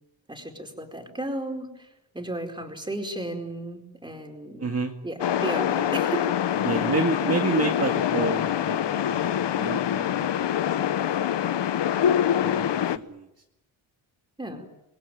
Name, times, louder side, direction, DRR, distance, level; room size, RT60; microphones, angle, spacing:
voice 1, 0.3-1.9 2.1-4.7 5.0-6.3 14.4-14.7, right 1 dB, 10° right, 3 dB, 4.6 m, -34 dB
voice 2, 4.6-4.9 6.6-10.5 10.9-11.0 11.4-11.8 12.0-12.7 12.9-13.3, right 4 dB, 30° right, 2 dB, 2.1 m, -30 dB
sound 1, 5.2-13.0, left 10 dB, 65° left, 1.1 m, -25 dB
28.0 x 21.5 x 9.3 m, 0.89 s
wide cardioid pair, 140°, 45 cm